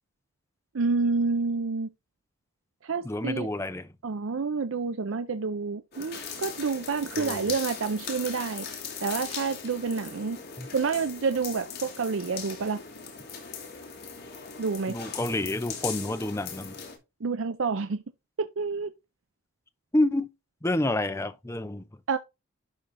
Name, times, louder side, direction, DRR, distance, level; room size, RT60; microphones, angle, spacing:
voice 1, 0.7-1.9 2.8-3.5 4.0-8.7 9.0-10.4 10.7-12.8 14.6-14.9 17.2-18.0 18.4-18.9 22.1-22.2, right 4 dB, 65° right, 0.5 m, -28 dB
voice 2, 3.0-3.9 7.2-7.5 10.6-10.7 14.9-16.7 19.9-20.3 20.6-21.8, left 1 dB, 15° left, 0.6 m, -28 dB
sound 1, 5.9-17.0, left 6 dB, 50° left, 2.9 m, -39 dB
11.5 x 3.8 x 4.0 m
head